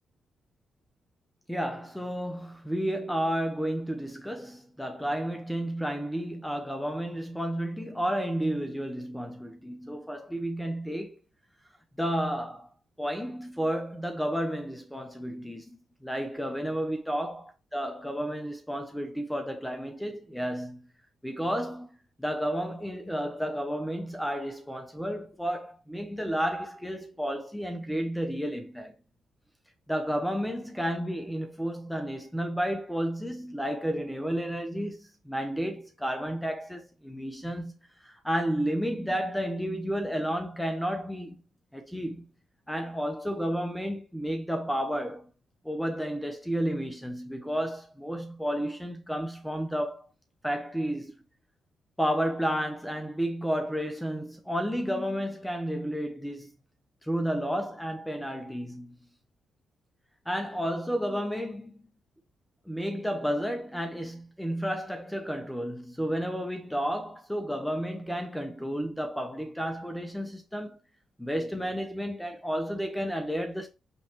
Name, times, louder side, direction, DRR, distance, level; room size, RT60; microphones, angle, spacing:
voice 1, 1.5-11.2 12.0-12.7 13.0-20.9 21.2-28.9 29.9-37.7 38.0-41.4 41.7-42.2 42.7-45.3 45.6-50.1 50.4-51.1 52.0-56.5 57.0-58.9 60.3-61.8 62.7-70.8 71.2-73.7, equal, 5° left, 0.9 m, -32 dB
5.3 x 3.3 x 2.9 m
cardioid pair, 65°, 0 cm